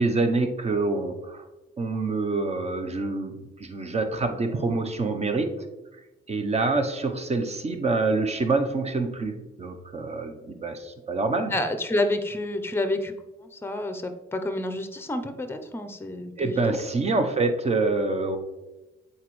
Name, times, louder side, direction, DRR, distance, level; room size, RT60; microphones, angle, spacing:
voice 1, 0.0-1.5 1.8-5.5 6.3-11.6 16.4-18.4, right 3 dB, 35° right, 6 dB, 0.8 m, -26 dB
voice 2, 11.5-13.1 13.6-16.8, left 1 dB, 10° left, 8 dB, 0.7 m, -29 dB
8.0 x 4.3 x 3.1 m, 1.0 s
cardioid pair, 90°, 20 cm